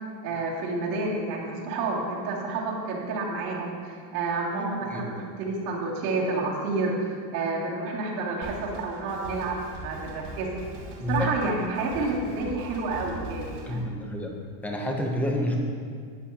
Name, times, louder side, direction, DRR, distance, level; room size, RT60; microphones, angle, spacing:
voice 1, 0.2-10.5 11.1-13.8, right 3 dB, 85° right, -5 dB, 2.4 m, -29 dB
voice 2, 4.6-5.1 11.0-11.3 13.7-14.3 14.6-15.6, left 1 dB, 5° left, 1 dB, 0.5 m, -29 dB
Drum kit, 8.4-13.8, right 1 dB, 65° right, 1.9 m, -41 dB
12.5 x 9.1 x 2.8 m, 2.1 s
cardioid pair, 165°, 47 cm